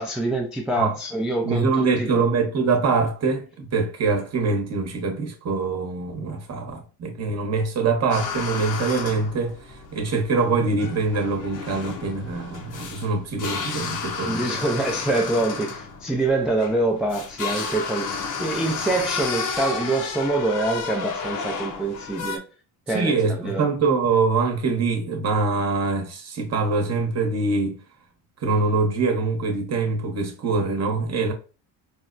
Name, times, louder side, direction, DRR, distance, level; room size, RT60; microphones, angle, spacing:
voice 1, 0.0-2.2 14.2-18.1 18.4-22.4 22.9-23.6, right 2 dB, ahead, 0.4 m, -25 dB
voice 2, 1.4-14.6 22.9-27.8 28.4-31.3, right 4 dB, 35° right, 1.0 m, -24 dB
sound 1, 8.1-22.4, left 5 dB, 45° left, 0.7 m, -32 dB
4.3 x 2.0 x 2.5 m
supercardioid pair, 95°, 44 cm